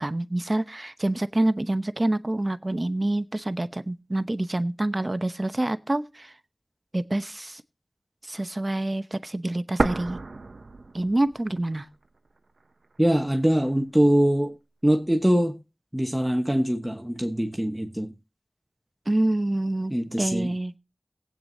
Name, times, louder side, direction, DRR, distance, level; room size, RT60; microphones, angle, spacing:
voice 1, 0.0-6.3 6.9-7.6 8.3-10.2 10.9-11.9 19.1-20.8, right 1 dB, 40° right, 0.9 m, -27 dB
sound 1, 9.8-11.7 12.0-12.1 12.8-13.8, right 3 dB, 90° right, 0.7 m, -30 dB
voice 2, 13.0-14.5 14.8-15.6 15.9-18.1 19.9-20.5, equal, 15° right, 1.2 m, -23 dB
19.0 x 8.8 x 2.7 m
wide cardioid pair, 40°, 0 cm